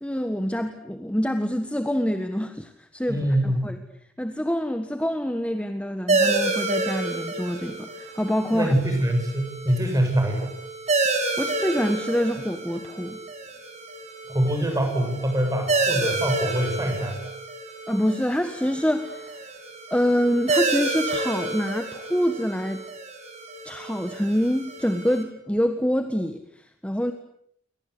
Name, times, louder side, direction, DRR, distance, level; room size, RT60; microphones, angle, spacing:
voice 1, 0.0-3.8 4.2-8.7 11.4-13.2 17.9-19.4 19.9-22.8 23.6-27.1, equal, 5° left, 7 dB, 1.5 m, -26 dB
voice 2, 3.1-3.6 8.5-10.5 14.3-17.2, right 1 dB, 15° right, 5 dB, 7.4 m, -24 dB
sound 1, 6.1-25.2, right 3 dB, 35° right, 5.6 m, -29 dB
28.5 x 24.0 x 8.3 m, 0.71 s
head